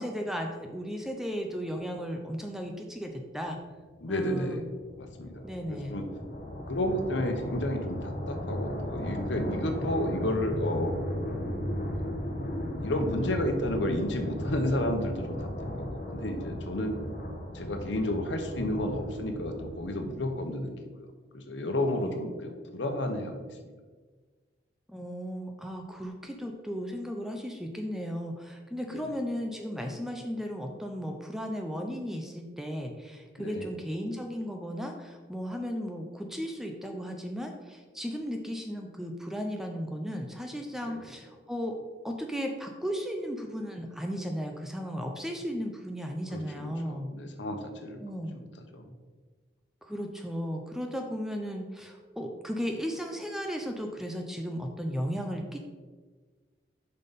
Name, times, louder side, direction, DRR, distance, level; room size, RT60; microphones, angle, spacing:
voice 1, 0.0-3.6 4.1-4.6 5.4-6.0 22.0-22.2 24.9-41.7 42.0-47.1 48.0-48.4 49.9-55.6, equal, ahead, 3 dB, 0.5 m, -35 dB
voice 2, 4.0-4.7 5.0-6.1 6.7-10.9 12.1-12.2 12.5-15.5 15.8-17.0 17.5-21.1 21.3-23.7 28.9-29.1 33.4-33.7 40.8-41.1 46.3-48.0 48.3-48.5 48.7-48.9, left 1 dB, 85° left, 5 dB, 1.0 m, -32 dB
sound 1, 4.1-20.4, left 1 dB, 50° left, 1.0 m, -36 dB
7.2 x 5.5 x 4.1 m, 1.4 s
head